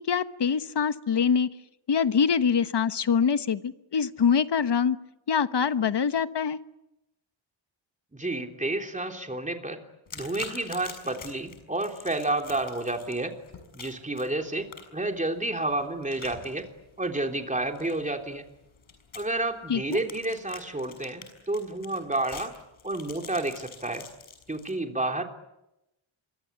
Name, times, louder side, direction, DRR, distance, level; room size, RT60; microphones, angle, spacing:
voice 1, 0.0-1.5 1.9-5.0 5.3-6.6 19.7-20.0, left 6 dB, 60° left, 12 dB, 1.2 m, -24 dB
voice 2, 8.1-9.8 10.1-13.3 13.7-16.7 17.0-18.4 19.1-22.5 22.8-24.0 24.5-25.2, right 2 dB, 15° right, 4 dB, 3.4 m, -30 dB
sound 1, 10.1-24.7, left 5 dB, 85° left, 6.3 m, -47 dB
27.0 x 23.5 x 8.3 m, 0.90 s
wide cardioid pair, 125°, 47 cm